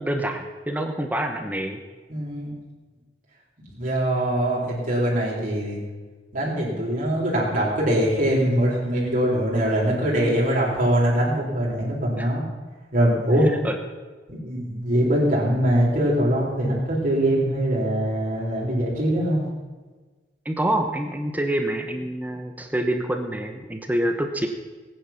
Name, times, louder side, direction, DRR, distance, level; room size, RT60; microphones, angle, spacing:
voice 1, 0.0-1.8 12.2-12.3 13.4-13.8 20.4-24.5, right 1 dB, 10° right, 4 dB, 1.0 m, -26 dB
voice 2, 2.1-2.5 3.7-5.8 6.3-12.4 12.9-13.5 14.3-19.4, right 1 dB, 50° right, -4 dB, 4.2 m, -22 dB
18.0 x 9.8 x 5.9 m, 1.3 s
head